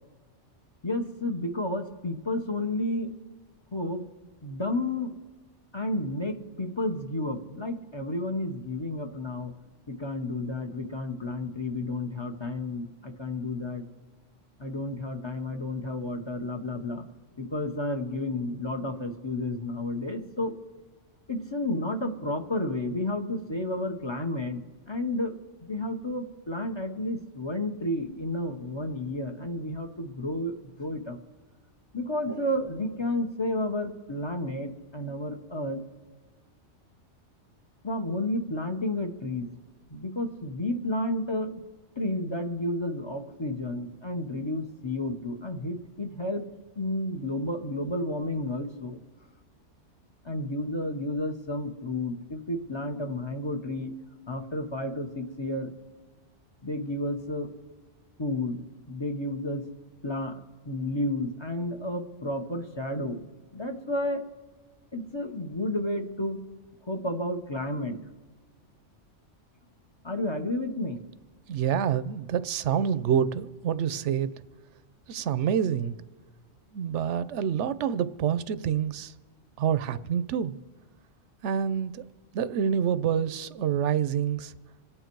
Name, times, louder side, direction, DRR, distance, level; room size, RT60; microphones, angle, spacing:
voice 1, 0.8-3.1 3.7-4.1 4.4-5.1 5.7-9.5 9.9-13.8 14.6-17.1 17.4-20.5 21.3-24.6 24.9-25.3 25.6-31.2 31.9-35.8 37.8-39.5 39.9-41.6 42.0-46.5 46.7-49.0 50.2-53.9 54.3-55.7 56.6-57.5 58.2-59.6 60.0-60.4 60.6-63.2 63.5-64.2 64.9-66.4 66.9-68.0 70.0-71.0, left 1 dB, 25° left, 1.0 m, -31 dB
voice 2, 71.5-74.3 75.1-75.9 76.7-79.1 79.6-80.6 81.4-82.0 82.3-84.5, right 8 dB, 75° right, 1.0 m, -27 dB
26.5 x 9.0 x 4.7 m
omnidirectional pair, 1.2 m